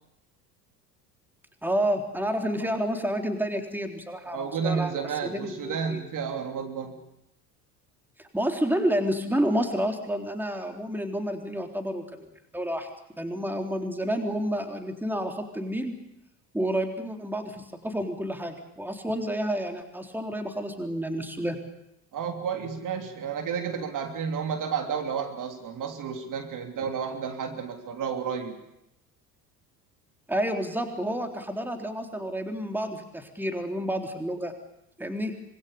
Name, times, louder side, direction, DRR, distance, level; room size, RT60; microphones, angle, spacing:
voice 1, 1.6-6.0 8.2-12.9 13.2-15.9 16.5-21.6 26.8-26.9 30.3-34.5 35.0-35.3, equal, 5° right, 5 dB, 3.5 m, -30 dB
voice 2, 4.3-7.0 22.1-28.6, right 6 dB, 40° right, 5 dB, 3.2 m, -31 dB
25.5 x 23.0 x 6.9 m, 0.80 s
figure-of-eight pair, 65°, 48 cm